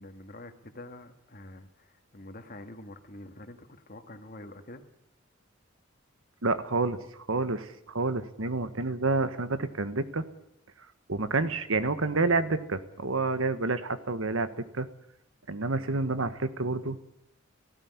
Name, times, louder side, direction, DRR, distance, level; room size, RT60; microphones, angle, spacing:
voice 1, 0.0-4.9, left 1 dB, 45° left, 7 dB, 1.9 m, -46 dB
voice 2, 6.4-7.0 7.3-10.2 11.1-14.9 15.5-17.0, right 3 dB, 85° right, 11 dB, 1.4 m, -29 dB
17.5 x 16.0 x 9.7 m, 0.81 s
head